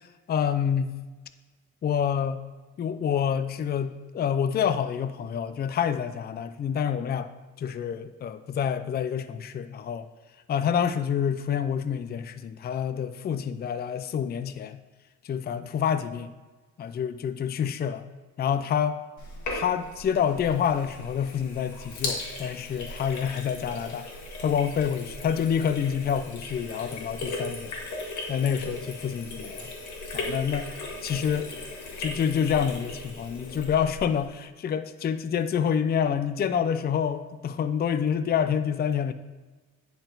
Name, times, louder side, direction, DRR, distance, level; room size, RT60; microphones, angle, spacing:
voice 1, 0.3-1.0 1.8-2.5 2.8-7.3 7.6-10.1 10.5-14.8 15.2-16.3 16.8-18.1 18.4-19.0 19.5-24.1 24.4-27.8 28.3-29.7 30.1-30.7 31.0-31.5 32.0-39.1, left 8 dB, 35° left, 10 dB, 0.4 m, -27 dB
Sink (filling or washing), 19.2-34.3, left 2 dB, 70° left, 1.9 m, -37 dB
10.0 x 4.6 x 3.9 m, 1.3 s
cardioid pair, 90°, 30 cm